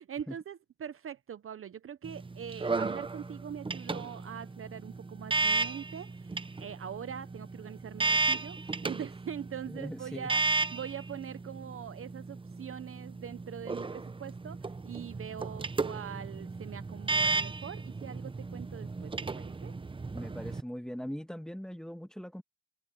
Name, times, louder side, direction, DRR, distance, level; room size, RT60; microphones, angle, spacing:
voice 1, 0.0-10.4 10.7-19.7, right 8 dB, 45° right, 0.9 m, -43 dB
sound 1, 2.0-20.6, right 3 dB, 15° right, 0.8 m, -34 dB
voice 2, 9.7-10.3 20.1-22.4, equal, ahead, 2.1 m, -40 dB
cardioid pair, 90°, 30 cm